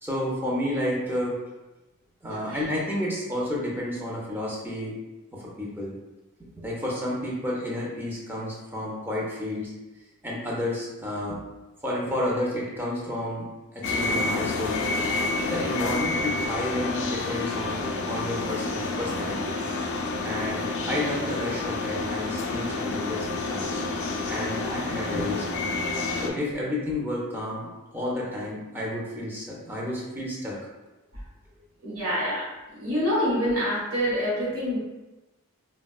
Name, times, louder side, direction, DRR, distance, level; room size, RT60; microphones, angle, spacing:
voice 1, 0.0-1.4 2.2-5.0 5.3-5.9 6.6-9.7 10.2-11.4 11.8-14.9 15.4-19.6 20.2-23.8 24.3-25.7 26.2-30.6, left 1 dB, 10° right, -4 dB, 0.5 m, -31 dB
sound 1, 13.8-26.3, left 3 dB, 55° left, 0.4 m, -29 dB
voice 2, 31.8-32.4 32.7-34.8, equal, 90° right, -9 dB, 1.3 m, -26 dB
3.5 x 2.2 x 2.2 m, 1.1 s
head